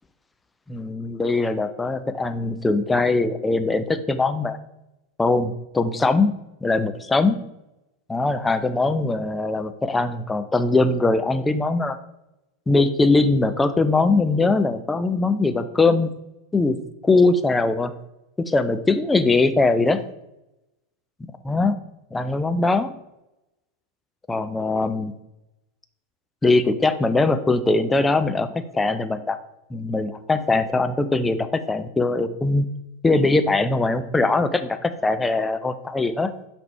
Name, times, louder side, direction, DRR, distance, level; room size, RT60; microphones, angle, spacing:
voice 1, 0.7-4.6 5.2-6.3 6.6-7.4 8.1-12.0 12.7-16.1 16.5-16.8 17.0-17.9 18.4-20.0 21.4-21.7 22.1-22.9 24.3-25.1 26.4-29.4 29.7-32.7 33.0-36.3, left 3 dB, 10° left, 10 dB, 0.5 m, -21 dB
5.9 x 3.4 x 5.2 m, 0.90 s
figure-of-eight pair, 90°, 0 cm